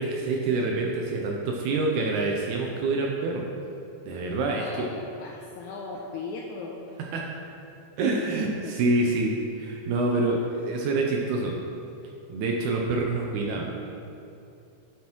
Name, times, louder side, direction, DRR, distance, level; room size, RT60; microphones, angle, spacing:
voice 1, 0.0-3.5 4.0-4.9 7.0-7.3 8.0-11.6 12.3-13.9, right 2 dB, 80° right, 0 dB, 1.9 m, -27 dB
voice 2, 4.5-6.8 8.2-8.3 8.6-8.7, left 4 dB, 85° left, 0 dB, 1.7 m, -38 dB
9.4 x 7.4 x 3.0 m, 2.7 s
omnidirectional pair, 3.9 m